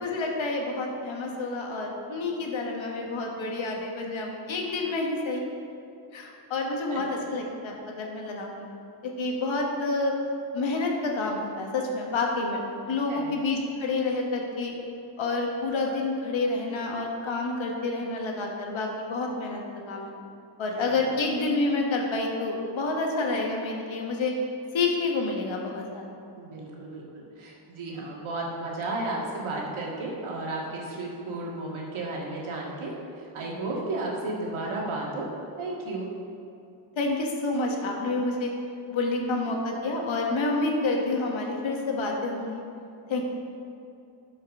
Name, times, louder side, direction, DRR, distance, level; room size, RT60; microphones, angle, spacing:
voice 1, 0.0-5.4 6.1-8.7 9.0-10.1 10.5-14.7 15.2-20.1 20.6-24.3 24.7-26.1 37.0-38.5 38.9-42.6 43.1-43.2, left 3 dB, 70° left, 0 dB, 1.4 m, -28 dB
voice 2, 20.7-21.0 26.4-32.9 33.2-35.3 35.6-36.1, right 2 dB, 75° right, -3 dB, 1.9 m, -33 dB
11.5 x 5.4 x 3.6 m, 2.6 s
cardioid pair, 110°, 48 cm